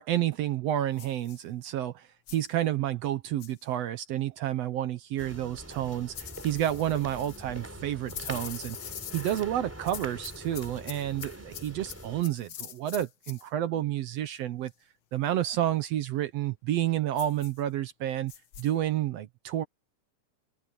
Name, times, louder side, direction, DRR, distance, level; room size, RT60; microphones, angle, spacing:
voice 1, 0.0-8.8 9.1-14.7 15.1-18.3 18.6-19.6, right 12 dB, 70° right, 1.8 m, -30 dB
sound 1, 1.0-1.4 2.3-2.5 3.4-3.6 6.1-7.4 8.1-9.5 9.8-13.4 17.2-17.6 18.3-18.7, left 10 dB, 60° left, 1.5 m, -44 dB
Footsteps on Concrete, 5.2-12.2, equal, 5° right, 3.6 m, -44 dB
omnidirectional pair, 3.4 m